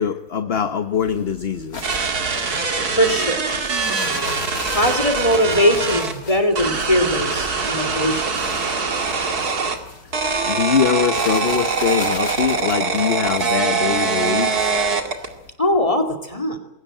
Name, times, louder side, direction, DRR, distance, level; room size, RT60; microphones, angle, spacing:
voice 1, 0.0-1.9 10.5-14.7, left 7 dB, 45° left, 9 dB, 1.2 m, -22 dB
sound 1, 0.9-15.5, left 3 dB, 65° left, 2.9 m, -39 dB
sound 2, 1.8-6.1 6.5-9.8 10.1-15.3, right 4 dB, 75° right, 2.7 m, -23 dB
voice 2, 2.9-3.4 4.7-8.3 15.6-16.6, equal, 20° left, 5 dB, 2.7 m, -20 dB
21.5 x 17.5 x 9.0 m, 0.96 s
omnidirectional pair, 1.7 m